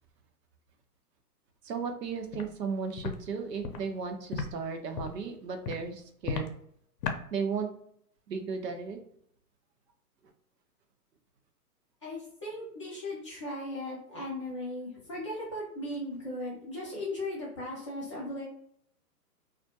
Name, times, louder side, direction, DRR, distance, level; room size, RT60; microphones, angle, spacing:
voice 1, 1.6-6.5 7.3-7.7 8.3-9.0, right 5 dB, 90° right, 5 dB, 0.7 m, -35 dB
Walk footsteps, 2.3-2.5 3.0-3.2 3.6-3.8 4.3-4.5 4.9-5.2 5.6-5.8 6.2-6.5 7.0-7.2, left 5 dB, 80° left, 0.6 m, -33 dB
voice 2, 12.0-18.5, left 1 dB, 20° left, -6 dB, 0.4 m, -37 dB
2.3 x 2.1 x 2.7 m, 0.68 s
hypercardioid pair, 140°, 48 cm